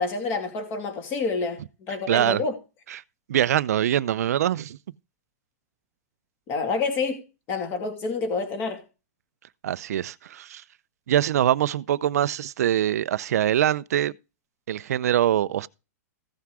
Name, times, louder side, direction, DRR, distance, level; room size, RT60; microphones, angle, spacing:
voice 1, 0.0-1.6 1.9-2.6 6.5-8.8, left 4 dB, 25° left, 2.6 m, -28 dB
voice 2, 2.1-2.4 2.9-3.0 3.3-4.8 9.6-10.6 11.1-14.1 14.7-15.7, right 11 dB, 75° right, 0.5 m, -23 dB
15.5 x 5.9 x 4.8 m
supercardioid pair, 170°, 9 cm